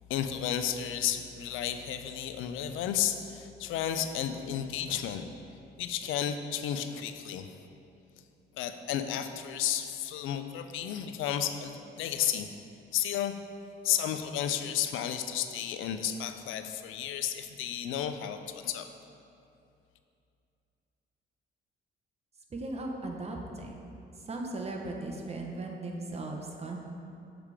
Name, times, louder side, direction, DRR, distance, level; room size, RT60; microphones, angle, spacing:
voice 1, 0.1-5.2 5.8-7.5 8.5-12.5 12.9-13.3 13.8-18.9, left 10 dB, 85° left, 8 dB, 0.4 m, -32 dB
voice 2, 22.5-23.8 24.3-26.8, right 2 dB, 30° right, 1 dB, 0.8 m, -37 dB
7.3 x 3.4 x 4.8 m, 2.6 s
cardioid pair, 90°, 20 cm